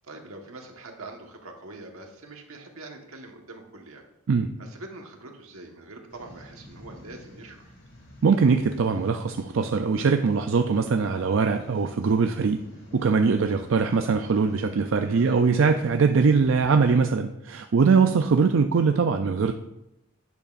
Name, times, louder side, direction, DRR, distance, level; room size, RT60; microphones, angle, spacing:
voice 1, 0.0-4.0 4.6-7.7 15.0-15.5, right 2 dB, 85° right, 2 dB, 1.4 m, -44 dB
sound 1, 6.1-17.0, left 1 dB, 60° left, 2.6 m, -50 dB
voice 2, 8.2-12.6 12.9-19.5, right 5 dB, 65° right, 6 dB, 0.4 m, -22 dB
10.5 x 8.2 x 2.5 m, 0.87 s
head